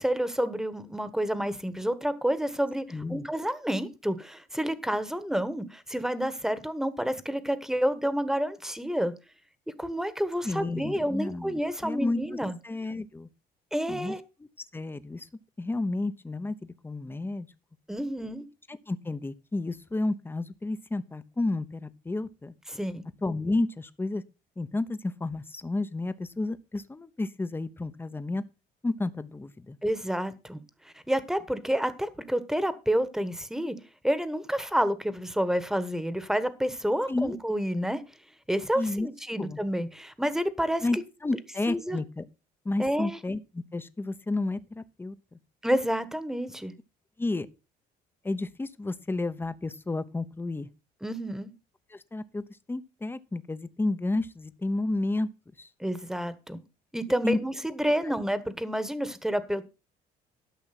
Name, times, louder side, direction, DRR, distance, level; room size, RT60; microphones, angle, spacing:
voice 1, 0.0-9.1 9.8-12.6 13.7-14.2 17.9-18.5 22.7-23.1 29.8-33.7 34.0-38.0 38.5-41.0 41.7-42.0 42.8-43.2 45.6-46.7 51.0-51.5 55.8-56.6 56.9-59.6, equal, 5° right, 1.3 m, -29 dB
voice 2, 2.9-3.3 10.4-12.2 12.6-13.3 13.9-14.1 14.6-15.3 15.6-17.5 18.7-22.5 23.2-24.2 24.6-28.4 28.8-29.8 37.1-37.4 38.7-39.1 39.4-39.6 40.8-41.0 41.2-42.2 42.6-45.4 47.2-47.5 48.2-50.7 51.9-55.3 55.6-55.7 57.2-57.4 58.0-58.1, left 2 dB, 15° left, 0.9 m, -31 dB
12.5 x 6.1 x 5.9 m
cardioid pair, 110°, 17 cm